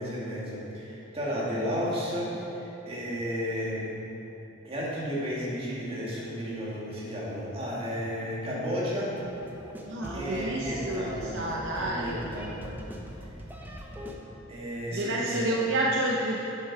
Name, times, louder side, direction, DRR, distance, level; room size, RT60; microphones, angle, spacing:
voice 1, 0.0-3.9 4.6-9.2 10.1-11.4 11.8-12.6 14.5-15.5, equal, 30° right, -6 dB, 2.0 m, -33 dB
sound 1, 9.1-14.1, equal, 10° right, 0.8 m, -41 dB
voice 2, 9.9-12.3 14.9-16.4, right 1 dB, 65° right, -3 dB, 0.8 m, -29 dB
9.9 x 6.8 x 4.7 m, 3.0 s
head